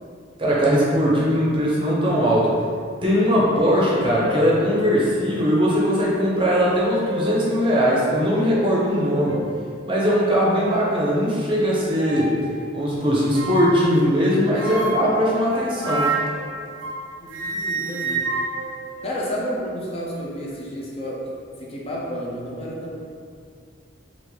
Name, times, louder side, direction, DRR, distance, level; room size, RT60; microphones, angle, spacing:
voice 1, 0.4-2.5 3.0-9.4 9.9-12.3 12.7-16.1, equal, 25° right, -5 dB, 0.6 m, -20 dB
sound 1, 4.2-4.6 5.3-5.4 6.7-7.5 7.9-8.0 8.5-8.7 9.3-9.5 10.2-10.9 11.9-12.4 13.3-13.9 14.6-17.0 17.3-19.6, right 2 dB, 85° right, 0.6 m, -29 dB
voice 2, 17.2-18.2 19.0-21.3 21.6-23.0, equal, 30° left, -4 dB, 0.5 m, -31 dB
3.6 x 2.5 x 3.2 m, 2.3 s
head